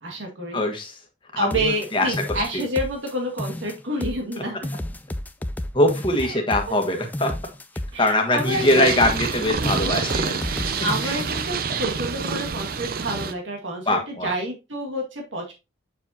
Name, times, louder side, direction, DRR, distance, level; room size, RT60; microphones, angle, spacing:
voice 1, 0.0-0.6 1.4-4.6 6.2-6.3 6.7-7.0 7.9-9.0 9.6-10.1 10.4-15.5, right 1 dB, 75° right, 1 dB, 2.0 m, -29 dB
voice 2, 0.5-1.0 1.3-2.6 5.7-7.3 8.0-10.5 11.0-11.2 11.7-11.8 13.8-14.3, left 1 dB, 25° left, 3 dB, 1.4 m, -22 dB
sound 1, 1.5-3.1 3.4-4.4 4.6-8.1 8.4-9.4 9.6-11.5, left 1 dB, 10° left, 0.3 m, -32 dB
Purr, 8.5-13.3, right 5 dB, 45° right, 0.6 m, -27 dB
7.1 x 6.7 x 2.8 m, 0.26 s
head